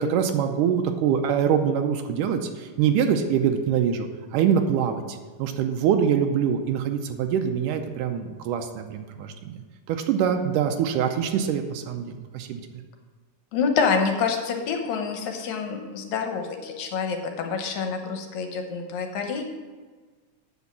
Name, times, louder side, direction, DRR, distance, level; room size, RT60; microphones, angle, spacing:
voice 1, 0.0-9.6 9.9-12.6, right 8 dB, 85° right, 6 dB, 2.1 m, -24 dB
voice 2, 13.5-19.4, left 5 dB, 70° left, 4 dB, 2.1 m, -27 dB
8.2 x 6.2 x 7.3 m, 1.4 s
omnidirectional pair, 3.8 m